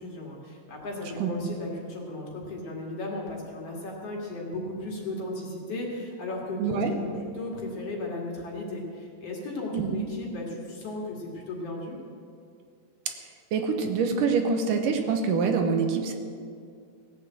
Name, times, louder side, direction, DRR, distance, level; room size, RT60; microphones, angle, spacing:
voice 1, 0.0-12.0, left 2 dB, 50° left, -1 dB, 2.7 m, -35 dB
voice 2, 1.2-1.5 6.6-6.9 9.7-10.1 13.5-16.1, right 5 dB, 75° right, 5 dB, 2.4 m, -25 dB
17.0 x 8.4 x 7.5 m, 2.3 s
omnidirectional pair, 4.0 m